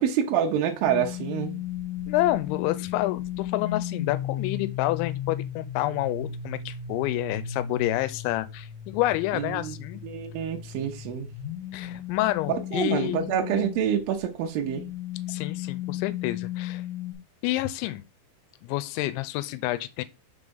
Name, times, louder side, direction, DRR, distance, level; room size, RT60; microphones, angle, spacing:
voice 1, 0.0-1.5 9.3-9.8 10.0-11.3 12.7-14.8, right 8 dB, 80° right, 2.1 m, -27 dB
sound 1, 0.8-13.9 14.5-17.1, left 10 dB, 70° left, 2.8 m, -35 dB
voice 2, 2.1-10.0 11.7-13.3 15.3-16.8 17.4-18.0 18.6-20.0, left 16 dB, 90° left, 2.9 m, -28 dB
6.6 x 3.4 x 5.3 m
omnidirectional pair, 5.2 m